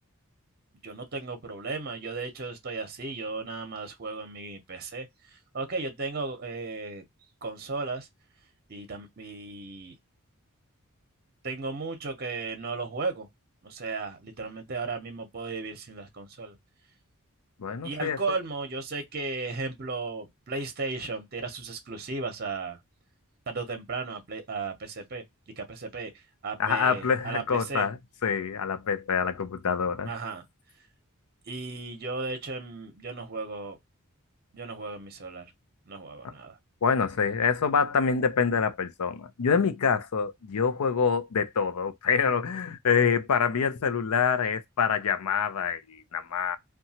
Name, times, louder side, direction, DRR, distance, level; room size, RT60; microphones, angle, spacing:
voice 1, 0.8-5.1 5.5-7.0 7.4-8.1 8.7-9.9 11.4-13.3 13.6-16.6 17.8-22.8 23.5-25.2 25.6-26.1 26.4-27.9 30.1-30.4 31.5-33.8 34.5-35.4 35.9-36.6, right 3 dB, 45° right, 0.7 m, -35 dB
voice 2, 17.6-18.2 26.6-30.1 36.8-46.6, left 6 dB, 85° left, 0.5 m, -26 dB
2.8 x 2.3 x 2.7 m
head